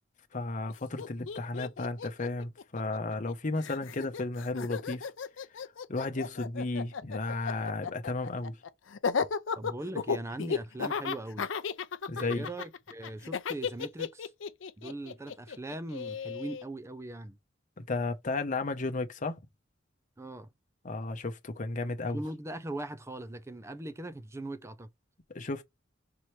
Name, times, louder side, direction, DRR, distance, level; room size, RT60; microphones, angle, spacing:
voice 1, 0.3-5.1 5.9-8.6 12.1-12.5 17.8-19.4 20.8-22.2 25.3-25.6, left 3 dB, 40° left, 0.8 m, -33 dB
Laughter, 0.7-0.8 1.0-3.3 3.6-16.6, left 5 dB, 75° left, 0.5 m, -35 dB
voice 2, 9.6-11.5 12.1-14.3 14.8-17.4 20.2-20.5 22.1-24.9, right 1 dB, 15° right, 0.5 m, -40 dB
5.5 x 3.0 x 3.1 m
head